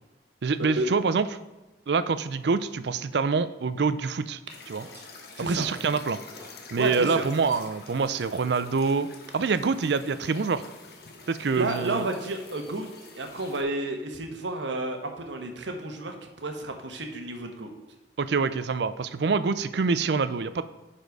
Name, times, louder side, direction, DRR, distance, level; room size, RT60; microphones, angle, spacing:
voice 1, 0.4-1.3 1.9-4.4 4.7-4.9 5.4-6.2 6.7-9.1 9.3-10.6 11.3-12.0 18.2-20.6, right 4 dB, 70° right, 13 dB, 0.4 m, -26 dB
sound 1, 4.5-13.6, left 4 dB, 60° left, 1.1 m, -47 dB
sound 2, 4.8-6.0 6.4-6.7 7.0-7.1 7.4-7.8 8.5-9.3 9.7-10.2, left 1 dB, 15° right, 1.7 m, -51 dB
voice 2, 5.3-5.7 6.8-7.2 11.5-12.9 13.1-17.7, right 2 dB, 90° right, 5 dB, 1.2 m, -31 dB
10.0 x 4.3 x 4.7 m, 1.1 s
head